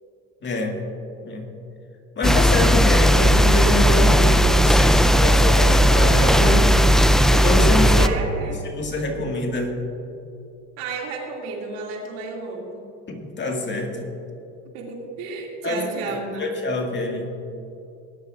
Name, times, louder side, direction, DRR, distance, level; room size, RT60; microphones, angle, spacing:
voice 1, 0.4-0.8 1.2-1.5 2.2-6.7 7.3-8.1 8.4-9.8 13.1-14.1 15.6-17.3, left 2 dB, 35° left, 2 dB, 2.0 m, -26 dB
sound 1, 2.2-8.1, equal, ahead, 0.4 m, -16 dB
voice 2, 7.8-8.6 10.8-12.9 14.7-16.5, right 3 dB, 90° right, -1 dB, 2.7 m, -32 dB
19.5 x 11.0 x 2.6 m, 2.7 s
supercardioid pair, 100°, 33 cm